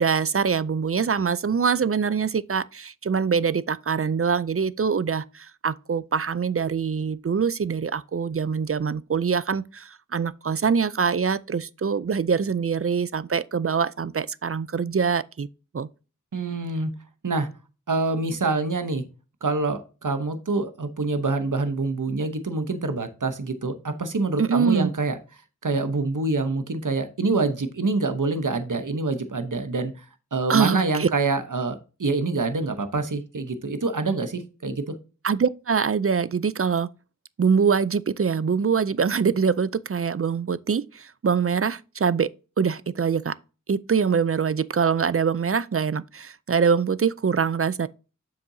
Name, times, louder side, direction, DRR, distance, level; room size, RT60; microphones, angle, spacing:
voice 1, 0.0-15.5 15.7-15.9 24.4-24.9 30.5-31.1 35.2-36.9 37.4-42.3 42.6-43.3 43.7-47.9, right 6 dB, 45° right, 0.4 m, -24 dB
voice 2, 16.3-16.9 17.2-17.5 17.9-19.0 19.4-25.2 25.6-30.0 30.3-34.9, right 3 dB, 75° right, 0.9 m, -26 dB
7.5 x 5.8 x 2.7 m
wide cardioid pair, 40°, 32 cm